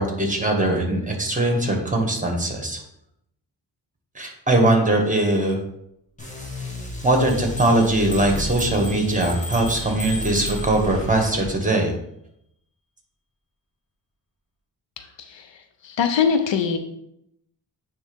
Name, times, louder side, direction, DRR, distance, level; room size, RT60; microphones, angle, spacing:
voice 1, 0.0-2.8 4.2-5.6 7.0-11.9, right 1 dB, 15° right, 2 dB, 1.8 m, -21 dB
sound 1, 6.2-11.5, left 1 dB, 15° left, 2.0 m, -33 dB
sound 2, 7.3-11.3, equal, 35° left, 1.6 m, -36 dB
voice 2, 15.0-15.5 15.8-16.8, left 6 dB, 75° left, 8 dB, 0.8 m, -23 dB
9.4 x 3.5 x 3.5 m, 0.77 s
cardioid pair, 60°, 45 cm